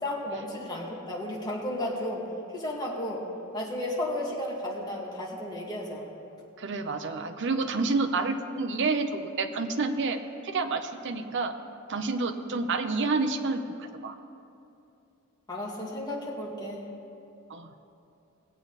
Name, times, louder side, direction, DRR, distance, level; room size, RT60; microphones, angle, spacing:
voice 1, 0.0-2.3 2.5-3.2 3.5-6.1 15.5-16.8, left 1 dB, 20° left, -4 dB, 2.1 m, -33 dB
voice 2, 6.6-11.6 11.9-14.1 17.5-17.7, right 3 dB, 60° right, 6 dB, 0.7 m, -29 dB
20.0 x 8.0 x 4.1 m, 2.7 s
head